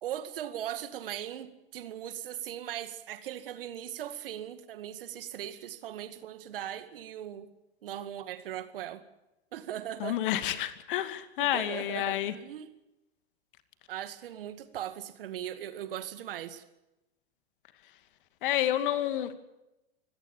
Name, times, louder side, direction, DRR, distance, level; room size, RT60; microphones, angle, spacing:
voice 1, 0.0-7.5 7.8-9.0 9.5-10.2 11.4-12.7 13.9-16.6, right 11 dB, 60° right, 2.1 m, -39 dB
voice 2, 10.0-12.3 18.4-19.3, left 12 dB, 55° left, 2.4 m, -29 dB
25.0 x 18.0 x 7.2 m
figure-of-eight pair, 95°, 31 cm